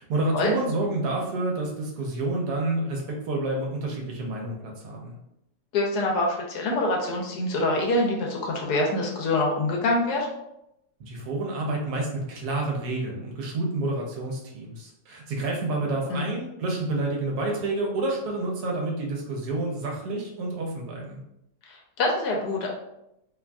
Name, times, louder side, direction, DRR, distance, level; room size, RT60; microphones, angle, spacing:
voice 1, 0.0-5.2 11.0-21.2, right 2 dB, 70° right, -1 dB, 1.1 m, -29 dB
voice 2, 5.7-10.3 16.1-16.3 21.7-22.7, left 2 dB, 75° left, 0 dB, 1.1 m, -25 dB
3.0 x 2.4 x 2.2 m, 0.83 s
omnidirectional pair, 1.8 m